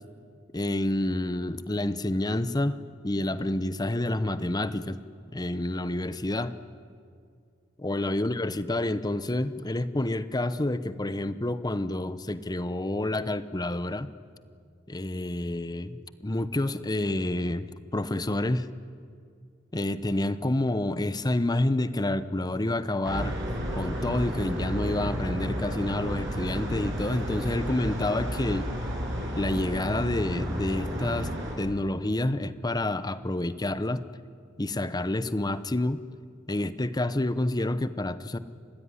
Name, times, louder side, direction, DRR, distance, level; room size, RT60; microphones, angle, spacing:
voice 1, 0.5-5.0 5.3-6.5 7.8-14.1 14.9-17.7 17.9-18.7 19.7-23.4 23.7-28.7 29.4-31.3 31.6-34.1 34.6-36.0 36.5-38.4, left 1 dB, 20° left, 14 dB, 0.8 m, -28 dB
sound 1, 23.0-31.5, equal, 70° right, 6.7 m, -32 dB
29.5 x 16.0 x 9.9 m, 2.2 s
head